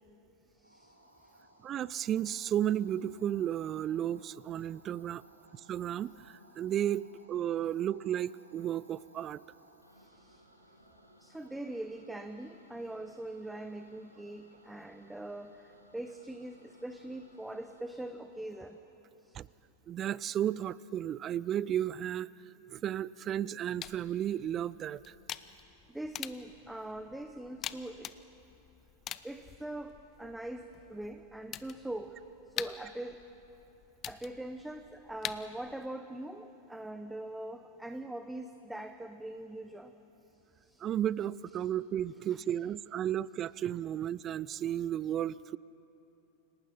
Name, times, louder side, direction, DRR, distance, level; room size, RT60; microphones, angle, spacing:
sound 1, 0.6-18.8, equal, 90° right, 1.9 m, -62 dB
voice 1, 1.6-5.2 5.5-9.4 19.3-19.5 19.9-22.3 22.7-25.1 40.8-45.6, right 10 dB, 30° right, 21 dB, 0.4 m, -33 dB
voice 2, 10.0-10.4 11.2-15.7 15.9-18.8 19.3-19.4 25.9-28.1 29.2-32.2 32.6-33.2 34.1-39.9 40.7-40.9 41.6-41.7 42.3-42.4, right 1 dB, 5° right, 8 dB, 0.8 m, -42 dB
sound 2, 23.8-35.9, left 10 dB, 30° left, 0.6 m, -46 dB
28.5 x 18.0 x 5.8 m, 3.0 s
figure-of-eight pair, 90°, 0 cm